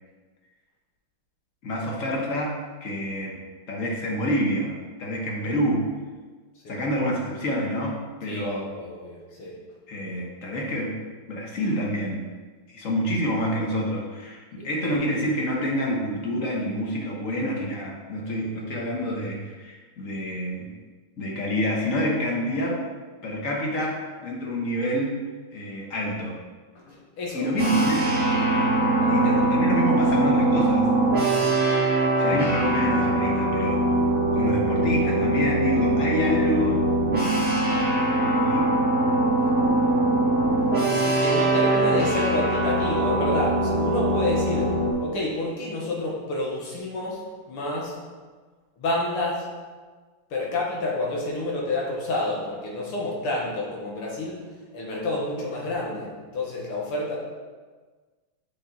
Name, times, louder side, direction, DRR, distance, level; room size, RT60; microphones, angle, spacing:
voice 1, 1.6-3.4 3.7-4.7 5.0-5.9 6.7-8.7 9.9-11.0 11.2-12.3 12.7-20.7 21.2-22.8 23.2-25.2 25.5-26.4 27.3-28.1 29.1-30.9 32.2-33.8 34.3-36.8 38.2-38.7, equal, 45° left, -2 dB, 1.3 m, -27 dB
voice 2, 8.3-9.6 14.6-14.7 18.2-18.7 26.8-27.6 29.0-29.2 40.9-47.2 47.5-48.0 48.8-49.5 50.3-54.5 54.7-57.2, left 2 dB, 80° left, -3 dB, 2.4 m, -29 dB
sound 1, 27.6-44.9, right 1 dB, 5° right, 1.6 m, -22 dB
7.5 x 5.0 x 4.1 m, 1.4 s
omnidirectional pair, 2.4 m